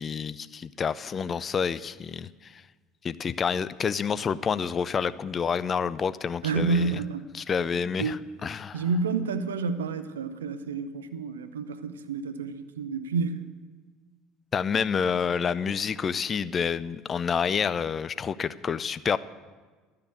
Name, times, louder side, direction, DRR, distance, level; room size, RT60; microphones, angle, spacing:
voice 1, 0.0-2.6 3.0-6.9 7.3-8.2 8.4-8.8 14.5-19.2, left 6 dB, 35° left, 0.4 m, -28 dB
voice 2, 6.4-7.3 7.7-8.3 8.7-13.4, right 4 dB, 80° right, 0.6 m, -29 dB
12.0 x 6.7 x 8.4 m
hypercardioid pair, 65°, 0 cm